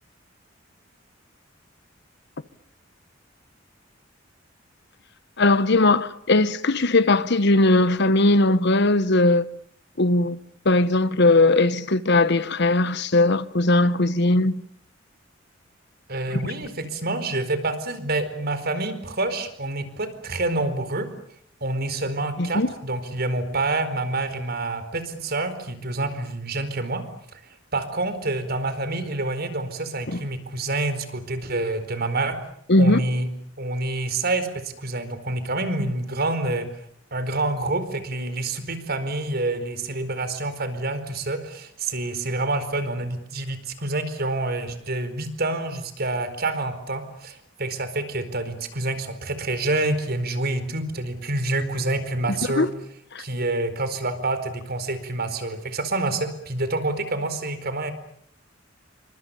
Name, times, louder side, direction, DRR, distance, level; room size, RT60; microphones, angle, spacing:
voice 1, 5.4-9.4 10.0-10.4 10.6-14.5 16.3-16.4 22.4-22.7 30.1-30.2 32.7-33.0 52.6-52.7 53.1-53.2, left 2 dB, 60° left, 1.1 m, -19 dB
voice 2, 16.1-21.1 21.6-27.0 27.7-32.4 32.8-33.3 33.6-36.7 37.1-52.7 53.2-57.9, right 2 dB, 55° right, 4.5 m, -27 dB
29.0 x 25.0 x 7.0 m
head